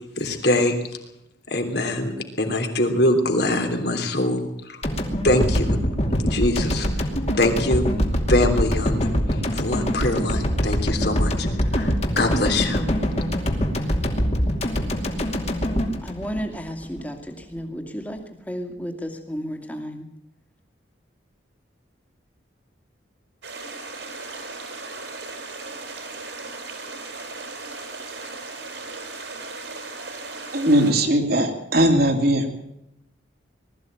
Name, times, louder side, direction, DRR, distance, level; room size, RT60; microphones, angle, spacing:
voice 1, 0.2-0.8 1.5-2.1 2.4-4.8 5.2-5.8 6.3-7.1 7.4-7.9 8.3-9.1 9.5-11.5 11.7-12.8, left 1 dB, 55° left, 4 dB, 3.3 m, -23 dB
sound 1, 4.8-17.0, equal, 35° left, 2.6 m, -24 dB
voice 2, 16.0-20.1, equal, 10° left, 5 dB, 2.4 m, -33 dB
sound 2, 23.4-30.9, right 3 dB, 70° right, 4.4 m, -36 dB
voice 3, 30.5-32.5, right 1 dB, 55° right, 4 dB, 2.8 m, -19 dB
20.0 x 14.0 x 9.0 m, 0.83 s
head